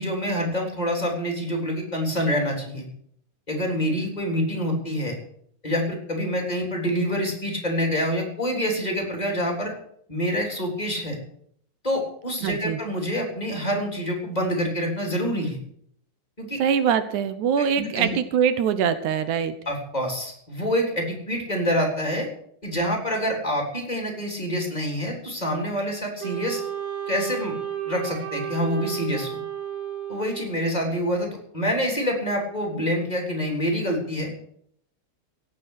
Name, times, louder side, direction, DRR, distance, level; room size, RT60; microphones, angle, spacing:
voice 1, 0.0-2.8 3.5-5.2 5.6-9.7 10.1-11.2 11.8-15.6 16.4-16.6 17.8-18.2 19.7-22.3 22.6-26.6 27.1-27.5 27.9-29.4 30.1-34.3, equal, 15° left, 1 dB, 3.5 m, -26 dB
voice 2, 12.4-12.8 16.6-19.6, right 7 dB, 80° right, 12 dB, 2.3 m, -23 dB
Wind instrument woodwind instrument, 26.2-30.8, right 10 dB, 65° right, 2.5 m, -32 dB
17.0 x 7.5 x 8.4 m, 0.67 s
omnidirectional pair, 3.5 m